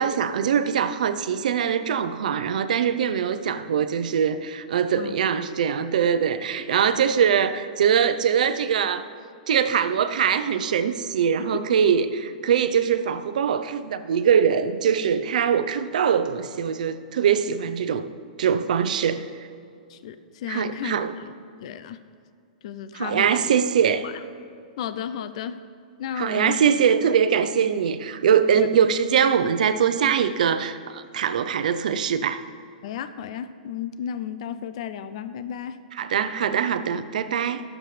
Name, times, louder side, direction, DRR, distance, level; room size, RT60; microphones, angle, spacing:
voice 1, 0.0-9.1 9.5-18.1 18.4-19.2 20.5-21.1 22.9-24.0 26.2-32.4 36.0-37.6, right 7 dB, 70° right, 11 dB, 0.7 m, -22 dB
voice 2, 19.9-21.3 21.6-22.0 22.6-23.6 24.0-24.2 24.8-25.6 26.0-26.6 28.6-28.7 32.8-35.8, left 9 dB, 50° left, 11 dB, 0.5 m, -33 dB
21.5 x 7.4 x 3.3 m, 2.4 s
hypercardioid pair, 160°, 4 cm